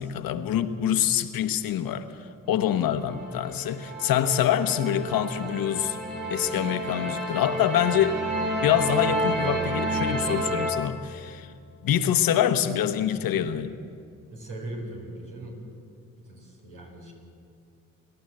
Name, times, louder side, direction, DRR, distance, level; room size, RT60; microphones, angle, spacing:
voice 1, 0.0-2.1 2.5-6.0 6.3-8.2 8.6-11.5 11.8-13.7, left 10 dB, 75° left, 9 dB, 1.1 m, -25 dB
sound 1, 3.0-10.7, right 1 dB, 60° right, 6.1 m, -30 dB
voice 2, 14.3-15.6 16.3-17.1, right 1 dB, 90° right, -1 dB, 5.0 m, -39 dB
30.0 x 11.5 x 7.7 m, 2.5 s
supercardioid pair, 50°, 35 cm